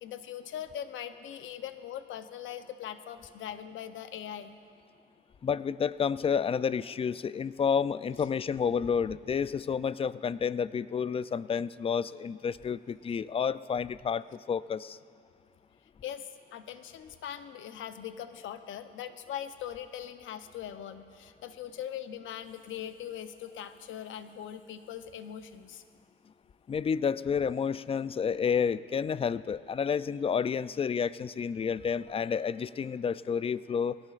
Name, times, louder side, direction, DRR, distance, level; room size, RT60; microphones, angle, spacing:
voice 1, 0.0-4.5 16.0-25.8, left 10 dB, 80° left, 10 dB, 0.8 m, -41 dB
voice 2, 5.4-15.0 26.7-34.0, left 6 dB, 30° left, 16 dB, 0.4 m, -30 dB
21.0 x 18.0 x 2.5 m, 2.3 s
cardioid pair, 90°, 20 cm